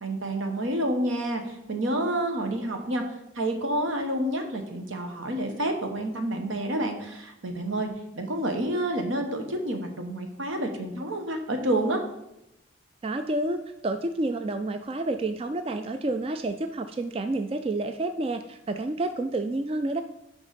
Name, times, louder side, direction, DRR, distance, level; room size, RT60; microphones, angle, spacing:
voice 1, 0.0-3.0 3.3-7.9 8.1-12.0, right 1 dB, 85° right, 5 dB, 1.1 m, -29 dB
voice 2, 13.0-20.0, right 2 dB, 30° right, 8 dB, 0.3 m, -29 dB
6.5 x 5.3 x 5.1 m, 0.87 s
head